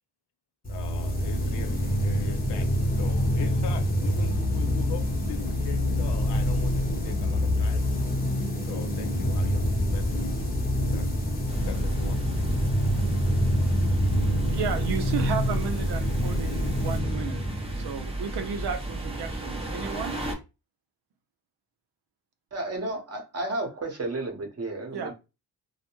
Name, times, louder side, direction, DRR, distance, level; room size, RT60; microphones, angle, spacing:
voice 1, 0.7-2.7 3.0-7.9 8.7-10.4 10.8-11.1 11.6-12.2, left 9 dB, 85° left, 0.5 m, -41 dB
sound 1, 0.7-18.2, equal, 20° left, 0.9 m, -26 dB
sound 2, 11.5-20.3, right 1 dB, 15° right, 0.6 m, -34 dB
voice 2, 14.2-17.4 17.7-20.2 24.9-25.1, right 6 dB, 75° right, 0.6 m, -33 dB
voice 3, 22.5-25.1, right 2 dB, 40° right, 0.9 m, -32 dB
2.2 x 2.1 x 2.9 m
cardioid pair, 80°, 40 cm